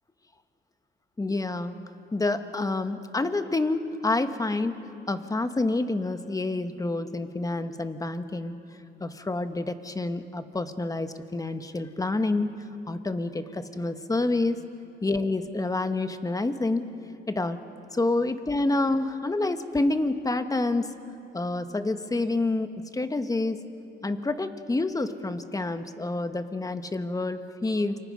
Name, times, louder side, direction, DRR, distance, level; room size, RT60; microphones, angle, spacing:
voice 1, 1.2-1.8 2.1-4.7 5.1-8.6 9.0-12.5 12.9-14.6 15.0-16.8 17.3-17.6 17.9-20.9 21.3-23.6 24.0-28.0, left 2 dB, 15° left, 9 dB, 1.3 m, -28 dB
28.5 x 24.5 x 5.3 m, 2.6 s
cardioid pair, 90°, 20 cm